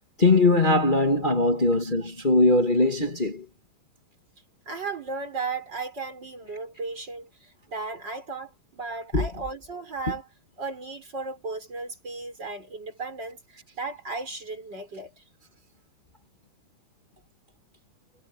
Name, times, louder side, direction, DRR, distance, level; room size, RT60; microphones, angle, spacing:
voice 1, 0.2-3.5 9.1-9.3, left 2 dB, 50° left, 0.5 m, -21 dB
voice 2, 4.7-10.3 10.6-15.2, right 3 dB, 25° right, 6.4 m, -35 dB
omnidirectional pair, 4.9 m